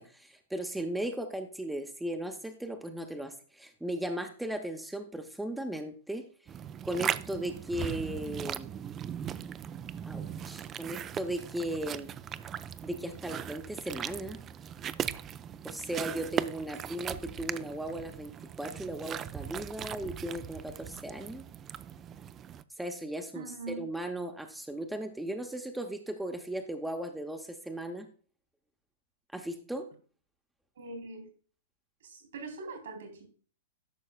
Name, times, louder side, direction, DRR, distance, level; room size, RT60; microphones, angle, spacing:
voice 1, 0.0-6.2 6.8-8.7 10.1-12.1 12.8-14.4 15.6-18.3 18.6-21.4 22.8-28.1 29.3-29.9, right 1 dB, 5° right, 0.7 m, -37 dB
sound 1, 6.5-22.6, right 9 dB, 25° right, 0.3 m, -39 dB
voice 2, 23.3-23.8 30.7-31.3 32.0-33.3, right 3 dB, 70° right, 3.2 m, -42 dB
11.0 x 6.3 x 2.3 m
hypercardioid pair, 110°, 0 cm